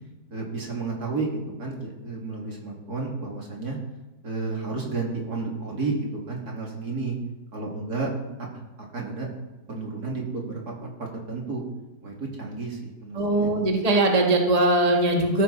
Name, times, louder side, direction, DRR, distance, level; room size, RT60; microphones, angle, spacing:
voice 1, 0.3-1.3 1.6-3.8 4.2-7.2 7.5-8.1 8.4-8.5 8.8-9.3 9.7-10.7 11.0-11.6 12.0-13.6, right 3 dB, 60° right, -1 dB, 3.3 m, -31 dB
voice 2, 13.1-15.4, right 2 dB, 20° right, 0 dB, 1.6 m, -21 dB
16.5 x 14.0 x 4.2 m, 1.0 s
omnidirectional pair, 1.9 m